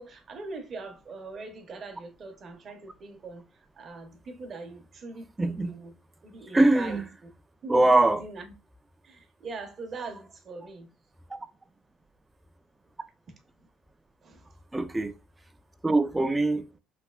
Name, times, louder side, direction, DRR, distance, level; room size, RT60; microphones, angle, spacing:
voice 1, 0.0-3.4 3.8-5.9 6.2-7.0 7.6-8.5 9.0-10.9 14.2-14.5, right 3 dB, 35° right, 0.7 m, -41 dB
voice 2, 5.4-5.7 6.5-7.1 7.7-8.2 14.7-15.1 15.8-16.6, right 2 dB, 10° right, 0.3 m, -22 dB
3.2 x 2.6 x 2.2 m
cardioid pair, 120°, 0 cm